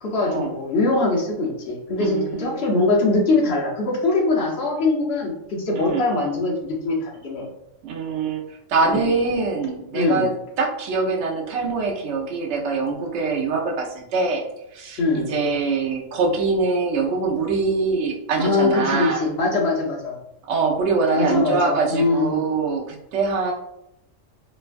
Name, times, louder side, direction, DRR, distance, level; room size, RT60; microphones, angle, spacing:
voice 1, 0.0-7.4 8.8-9.1 9.9-10.3 15.0-15.3 18.4-20.2 21.1-22.4, left 3 dB, 60° left, -2 dB, 1.0 m, -22 dB
voice 2, 2.0-2.6 5.7-6.0 7.8-8.4 8.7-10.3 10.6-14.4 14.7-19.2 20.5-23.5, right 4 dB, 70° right, 0 dB, 0.9 m, -23 dB
3.0 x 2.2 x 2.5 m, 0.81 s
omnidirectional pair, 1.3 m